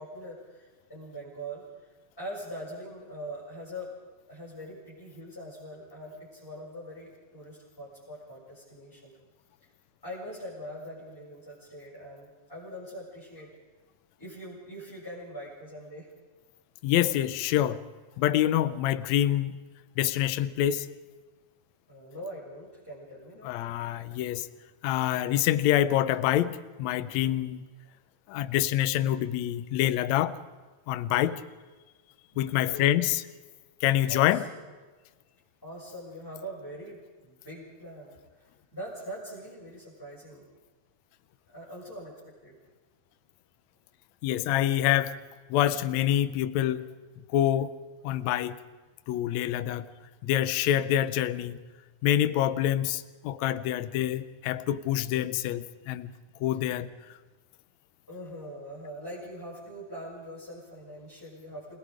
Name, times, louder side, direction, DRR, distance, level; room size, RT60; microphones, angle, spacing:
voice 1, 0.0-3.9 4.3-9.1 9.6-9.7 10.0-13.5 14.2-16.1 21.9-23.5 27.8-27.9 29.0-29.3 32.3-33.0 34.1-34.7 35.6-40.5 41.5-42.5 58.1-61.8, equal, 5° left, 6.6 m, -42 dB
voice 2, 16.8-17.8 18.2-19.5 20.0-20.9 23.4-24.5 24.8-27.6 28.3-30.4 30.9-31.4 32.4-33.2 33.8-34.4 44.2-45.1 45.5-46.9 47.3-47.7 48.0-48.6 49.1-49.9 50.2-51.6 52.0-56.1 56.4-56.9, left 12 dB, 75° left, 1.9 m, -26 dB
29.0 x 18.5 x 5.1 m
omnidirectional pair, 3.6 m